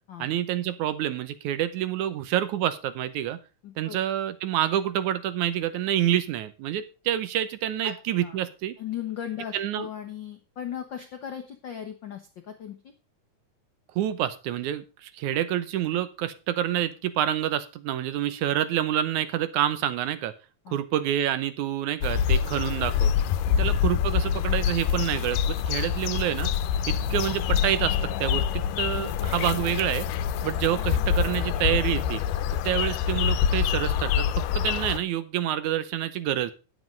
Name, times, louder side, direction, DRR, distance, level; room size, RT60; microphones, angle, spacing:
voice 1, 0.2-3.4 3.8-8.7 9.5-9.9 14.0-20.3 20.7-23.1 23.6-26.5 26.9-30.1 30.4-32.2 32.6-36.5, right 11 dB, 75° right, 13 dB, 2.2 m, -27 dB
voice 2, 3.6-4.0 7.8-8.4 8.8-12.9 20.6-20.8 23.5-23.7 26.9-27.0 30.4-30.5, left 9 dB, 70° left, 6 dB, 1.1 m, -37 dB
sound 1, 22.0-35.0, left 8 dB, 90° left, 2.2 m, -26 dB
9.7 x 7.9 x 5.2 m, 0.32 s
omnidirectional pair, 3.6 m